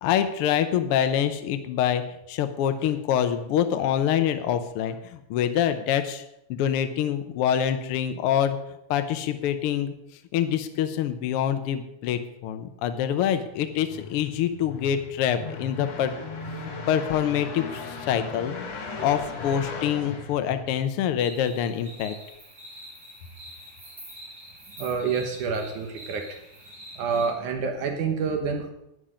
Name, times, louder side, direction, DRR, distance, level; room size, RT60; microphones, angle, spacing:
voice 1, 0.0-2.0 2.3-6.2 6.5-8.6 8.9-9.9 10.3-16.1 16.6-18.5 19.0-22.1, left 9 dB, 80° left, 9 dB, 1.2 m, -25 dB
sound 1, 13.5-21.1, left 4 dB, 55° left, 2.8 m, -37 dB
sound 2, 21.2-27.3, equal, 20° right, 5.8 m, -45 dB
voice 2, 24.8-26.4 27.0-28.7, right 5 dB, 75° right, 4 dB, 2.7 m, -28 dB
11.5 x 10.5 x 5.0 m, 0.82 s
omnidirectional pair, 3.5 m